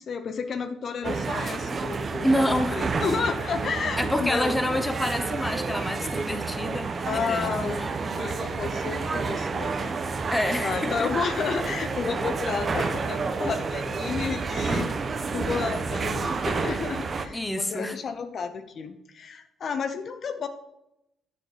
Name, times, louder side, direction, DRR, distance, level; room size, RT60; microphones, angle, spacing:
voice 1, 0.0-4.8 7.1-9.9 10.2-10.3 10.6-14.9 15.3-20.5, left 5 dB, 55° left, 9 dB, 0.8 m, -31 dB
sound 1, 1.0-17.3, right 4 dB, 40° right, 0.9 m, -29 dB
voice 2, 2.2-2.9 4.0-7.9 10.3-11.1 12.2-12.3 17.3-18.0, left 1 dB, 10° left, 9 dB, 0.9 m, -28 dB
10.0 x 4.6 x 5.0 m, 0.82 s
cardioid pair, 90°, 0 cm